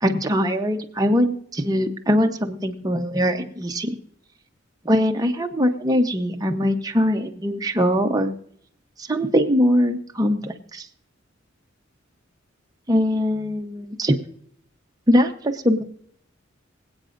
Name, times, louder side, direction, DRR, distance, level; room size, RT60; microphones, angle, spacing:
voice 1, 0.0-3.9 4.8-8.3 9.0-10.9 12.9-14.2 15.1-15.8, equal, 20° right, 5 dB, 0.8 m, -21 dB
25.0 x 8.6 x 2.6 m, 0.66 s
head